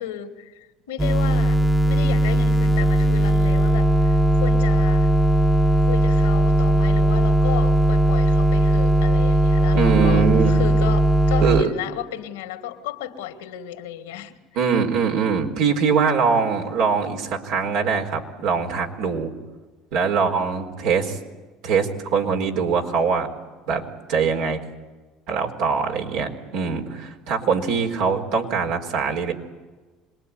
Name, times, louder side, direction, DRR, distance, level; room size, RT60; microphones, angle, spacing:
voice 1, 0.0-5.1 5.9-14.4, left 11 dB, 90° left, 6 dB, 2.4 m, -34 dB
sound 1, 1.0-11.6, right 1 dB, 10° right, 1.3 m, -18 dB
voice 2, 9.7-10.5 11.4-11.7 14.5-19.3 19.9-21.2 21.6-23.3 23.7-23.8 24.1-24.6 25.3-29.3, right 5 dB, 75° right, 2 dB, 4.3 m, -22 dB
26.5 x 21.0 x 9.6 m, 1.2 s
hypercardioid pair, 80°, 0 cm